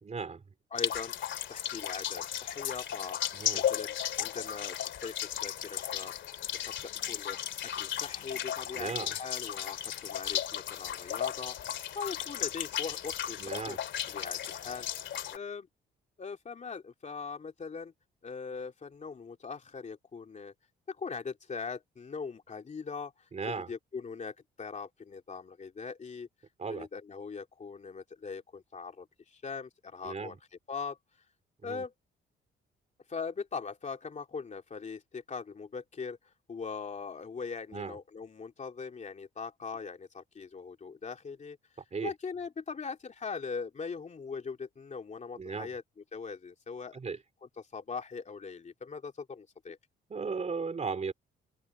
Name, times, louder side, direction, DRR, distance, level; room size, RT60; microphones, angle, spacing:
voice 1, 0.0-0.4 3.3-3.6 8.7-9.2 13.4-13.8 23.3-23.7 26.6-26.9 30.0-30.4 31.6-31.9 37.7-38.0 41.9-42.1 45.4-45.7 46.9-47.2 50.1-51.1, right 5 dB, 35° right, 3.6 m, -36 dB
voice 2, 0.7-3.2 3.5-6.1 6.6-7.4 7.8-13.8 14.0-14.9 15.3-15.7 16.2-17.9 18.2-20.5 20.9-26.3 26.7-30.3 30.7-31.0 31.6-31.9 33.1-41.6 42.0-45.8 46.1-47.0 47.6-49.8, left 5 dB, 35° left, 2.9 m, -41 dB
gully with water drips, 0.8-15.4, left 10 dB, 70° left, 2.6 m, -35 dB
cardioid pair, 90°, 20 cm